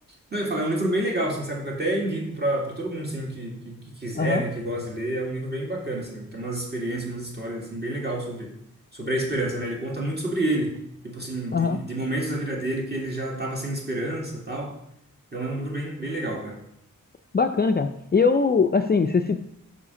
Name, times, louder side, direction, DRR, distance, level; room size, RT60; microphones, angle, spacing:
voice 1, 0.3-8.5 8.9-10.7 11.0-14.7 15.3-16.6, right 1 dB, 30° right, -2 dB, 1.9 m, -29 dB
voice 2, 17.3-19.4, left 4 dB, 30° left, 6 dB, 0.4 m, -21 dB
5.8 x 4.9 x 5.0 m, 0.75 s
wide cardioid pair, 70°, 34 cm